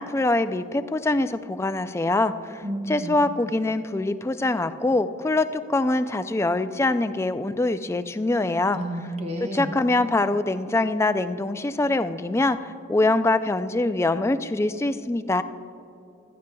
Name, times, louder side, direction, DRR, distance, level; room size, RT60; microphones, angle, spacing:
voice 1, 0.0-8.8 9.4-15.4, left 2 dB, 15° left, 11 dB, 0.3 m, -24 dB
voice 2, 2.6-3.1 8.7-9.8, right 1 dB, 35° right, 3 dB, 1.0 m, -31 dB
17.0 x 12.5 x 2.3 m, 2.6 s
head